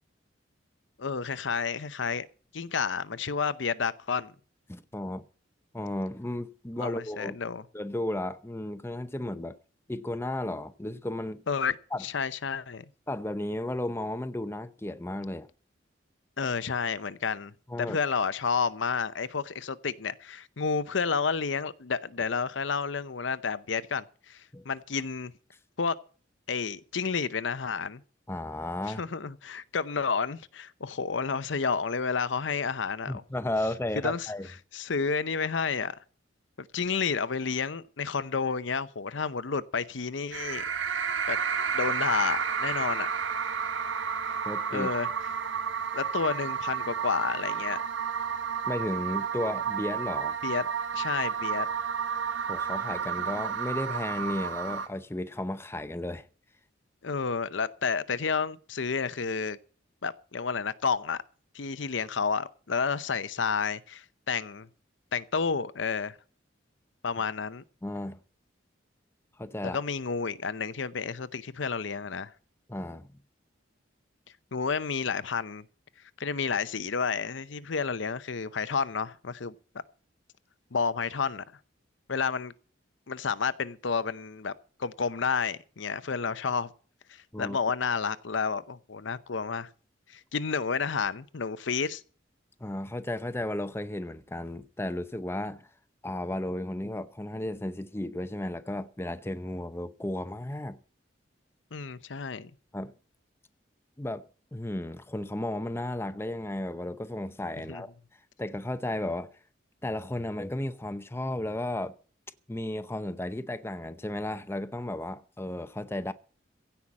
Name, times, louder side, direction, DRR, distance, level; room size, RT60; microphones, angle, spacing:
voice 1, 1.0-2.3 2.5-4.3 6.8-7.6 11.5-12.8 16.4-17.5 17.8-25.3 25.8-26.0 26.5-28.0 28.9-33.2 34.0-34.3 34.7-36.0 36.6-40.6 41.3-41.4 41.7-43.1 44.4-45.1 45.9-47.8 50.4-50.7 50.9-51.7 57.0-59.6 60.0-61.2 61.5-64.7 65.1-66.2 67.0-67.6 69.6-72.3 74.5-75.6 76.2-79.5 80.7-81.4 82.1-82.5 83.1-84.5 84.8-86.7 87.4-89.7 90.1-92.0 101.7-102.5 107.7-107.8, left 5 dB, 75° left, 0.7 m, -30 dB
voice 2, 4.7-5.2 5.7-7.3 7.7-9.6 9.9-11.4 11.9-12.0 13.1-15.5 17.7-18.0 24.5-24.6 28.3-29.0 33.1-34.5 44.5-44.9 48.7-50.4 52.5-56.3 67.8-68.2 69.4-69.8 72.7-73.1 87.3-87.6 92.6-95.7 96.0-100.8 102.7-102.9 104.0-107.9 108.4-109.3 109.8-111.9 112.5-116.1, left 1 dB, 15° left, 0.7 m, -34 dB
sound 1, 40.3-54.9, right 7 dB, 80° right, 1.4 m, -31 dB
16.0 x 5.7 x 8.5 m
head